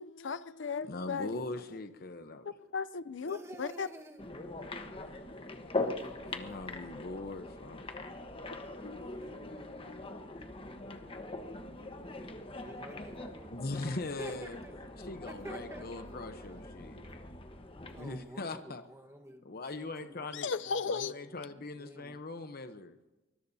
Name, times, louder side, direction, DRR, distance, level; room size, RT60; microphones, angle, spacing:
voice 1, 0.0-1.4 2.4-3.9 8.8-10.0 20.3-21.1, left 5 dB, 70° left, 0.6 m, -37 dB
voice 2, 0.9-2.5 4.7-5.4 6.2-8.1 13.5-14.6 15.0-17.0 18.0-18.8 19.4-20.5 20.9-23.0, left 2 dB, 55° left, 0.9 m, -41 dB
voice 3, 3.2-4.2 5.6-6.9 12.5-13.5 14.2-14.7 15.2-15.9 17.9-21.1 21.5-22.2, right 1 dB, 15° right, 1.4 m, -49 dB
sound 1, 4.2-18.2, left 2 dB, 30° left, 1.2 m, -42 dB
24.0 x 21.0 x 2.8 m
head